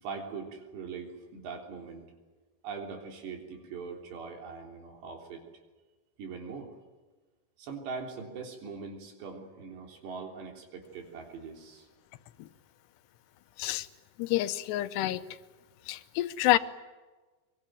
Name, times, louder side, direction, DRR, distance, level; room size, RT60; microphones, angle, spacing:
voice 1, 0.0-2.1 2.6-5.4 6.2-6.7 7.6-11.9, right 5 dB, 85° right, 2 dB, 5.7 m, -41 dB
voice 2, 14.2-15.2 15.9-16.6, left 16 dB, 80° left, 12 dB, 3.0 m, -28 dB
23.0 x 23.0 x 9.3 m, 1.3 s
omnidirectional pair, 4.8 m